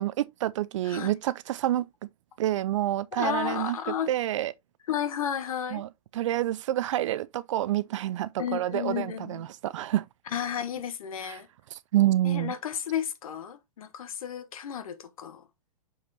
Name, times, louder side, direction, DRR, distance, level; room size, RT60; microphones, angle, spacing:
voice 1, 0.0-1.9 2.4-3.8 4.1-4.5 5.7-10.0 11.9-12.5, right 13 dB, 55° right, 0.5 m, -28 dB
voice 2, 0.8-1.2 3.1-4.1 4.9-5.8 8.4-9.5 10.3-11.5 12.2-15.5, left 9 dB, 65° left, 1.3 m, -33 dB
6.5 x 5.4 x 2.8 m
figure-of-eight pair, 105°, 19 cm